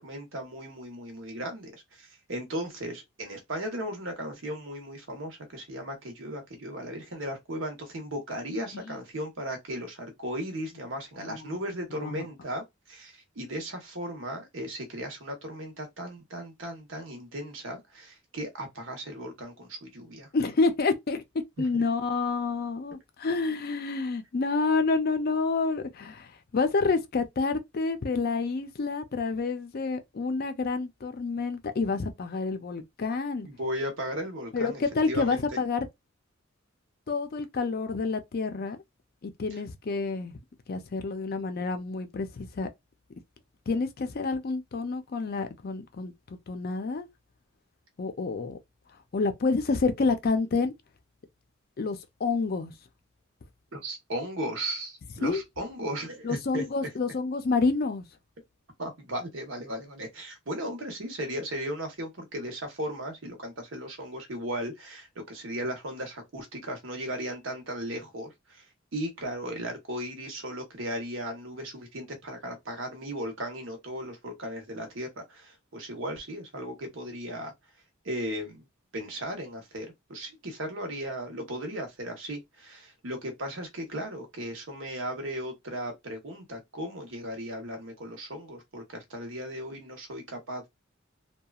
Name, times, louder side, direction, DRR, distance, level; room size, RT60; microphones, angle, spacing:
voice 1, 0.0-20.3 21.7-21.8 33.4-34.8 35.1-35.4 39.5-39.6 53.7-56.6 58.8-68.6 68.9-77.5 78.0-78.6 78.9-90.7, equal, 65° right, 1.0 m, -36 dB
voice 2, 11.2-11.5 11.9-12.3 20.3-21.2 21.6-33.5 34.5-35.9 37.1-38.8 39.2-40.4 40.7-42.7 43.7-47.1 48.0-48.6 49.1-50.7 51.8-52.7 55.2-55.4 56.2-58.0, left 4 dB, 50° left, 0.4 m, -28 dB
2.9 x 2.3 x 2.3 m
head